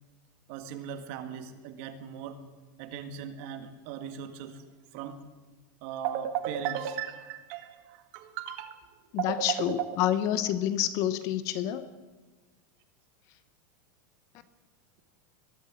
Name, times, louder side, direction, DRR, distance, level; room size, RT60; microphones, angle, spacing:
voice 1, 0.5-2.4 2.8-4.6 4.9-5.2 5.8-8.8 9.2-10.1, right 9 dB, 40° right, 9 dB, 1.9 m, -36 dB
voice 2, 9.1-11.9, left 11 dB, 35° left, 13 dB, 0.9 m, -28 dB
21.5 x 12.5 x 9.7 m, 1.3 s
supercardioid pair, 175°, 10 cm